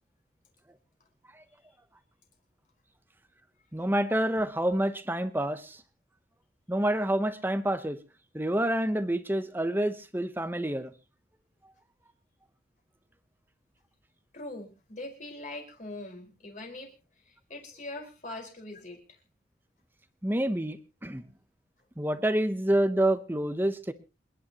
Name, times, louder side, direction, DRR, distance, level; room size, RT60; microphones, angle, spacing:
voice 1, 3.7-5.8 6.7-8.0 8.3-10.9 20.2-20.8 21.0-21.2 22.0-23.9, right 1 dB, 10° right, 11 dB, 0.9 m, -27 dB
voice 2, 14.3-16.9 17.3-19.0, left 2 dB, 45° left, 1 dB, 4.9 m, -42 dB
28.0 x 10.5 x 3.0 m, 0.31 s
head